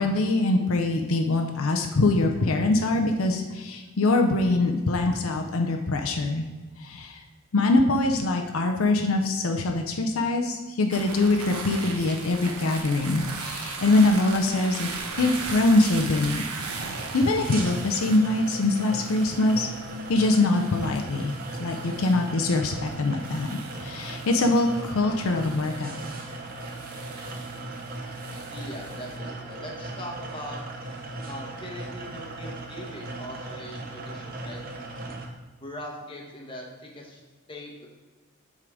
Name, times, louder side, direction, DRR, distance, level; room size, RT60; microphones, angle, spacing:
voice 1, 0.0-6.4 6.8-7.2 7.5-14.9 15.2-16.4 17.1-19.7 20.1-21.3 21.6-23.5 23.8-25.9, left 2 dB, 75° left, 3 dB, 0.6 m, -23 dB
sound 1, 10.9-29.2, right 4 dB, 85° right, 1.0 m, -39 dB
sound 2, 16.8-35.3, right 2 dB, 40° right, 0.8 m, -38 dB
voice 2, 28.5-30.6 31.3-34.6 35.6-37.2 37.5-37.9, equal, 25° left, -1 dB, 1.1 m, -40 dB
7.6 x 3.7 x 4.9 m, 1.3 s
head